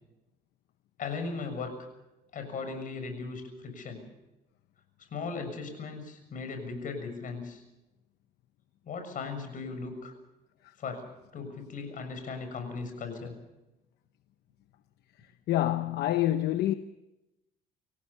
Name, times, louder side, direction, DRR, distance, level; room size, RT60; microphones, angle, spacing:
voice 1, 1.0-1.8 2.3-4.0 5.1-7.6 8.8-10.1 10.8-11.1 11.3-13.4, left 4 dB, 50° left, 6.9 m, -37 dB
voice 2, 15.5-16.7, left 13 dB, 75° left, 0.9 m, -27 dB
26.0 x 17.0 x 7.0 m
cardioid pair, 110°, 17 cm